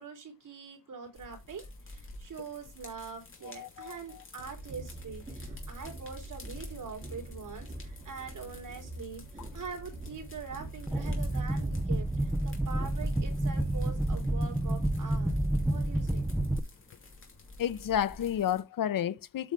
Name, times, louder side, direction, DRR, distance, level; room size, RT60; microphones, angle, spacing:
voice 1, 0.0-15.4 15.7-16.3, right 5 dB, 70° right, 3.3 m, -44 dB
sound 1, 1.1-18.6, left 2 dB, 40° left, 2.7 m, -50 dB
voice 2, 3.6-4.0 17.6-19.5, left 10 dB, 80° left, 0.7 m, -31 dB
Train, 4.4-16.6, right 1 dB, 25° right, 2.6 m, -44 dB
sound 2, 10.9-16.6, right 1 dB, 5° right, 0.6 m, -29 dB
8.9 x 5.1 x 4.7 m
wide cardioid pair, 170°, 33 cm